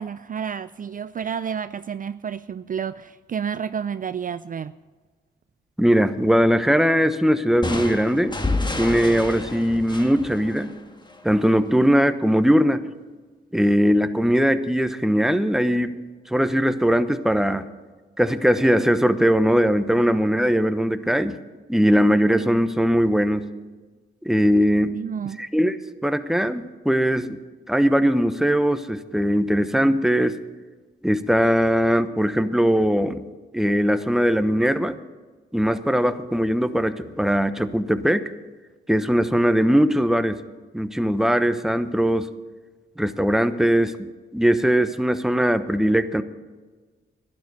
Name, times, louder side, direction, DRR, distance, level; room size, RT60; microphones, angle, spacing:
voice 1, 0.0-4.7 24.9-25.4, right 7 dB, 45° right, 14 dB, 0.4 m, -30 dB
voice 2, 5.8-8.4 8.8-10.7 11.2-12.8 13.5-16.0 16.3-17.6 18.2-21.4 21.7-23.5 24.2-25.0 25.4-25.8 26.0-27.4 27.7-30.3 31.0-33.2 33.5-35.0 35.5-38.2 38.9-40.4 40.7-42.3 43.0-46.2, equal, ahead, 10 dB, 1.0 m, -20 dB
sound 1, 7.6-11.3, left 2 dB, 20° left, 1.6 m, -29 dB
12.0 x 10.5 x 6.7 m, 1.4 s
cardioid pair, 55°, 20 cm